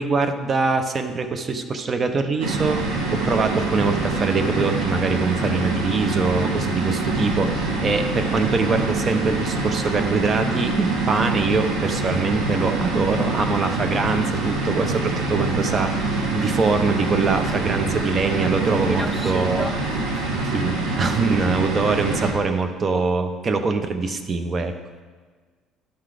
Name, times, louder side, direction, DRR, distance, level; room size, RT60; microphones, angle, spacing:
voice 1, 0.0-19.7 20.5-24.7, right 4 dB, 35° right, 8 dB, 0.8 m, -23 dB
sound 1, 2.4-22.3, right 3 dB, 85° right, 1.3 m, -25 dB
voice 2, 17.9-18.3 18.9-20.5, equal, ahead, 6 dB, 0.5 m, -34 dB
12.0 x 4.0 x 5.0 m, 1.5 s
supercardioid pair, 90°, 0 cm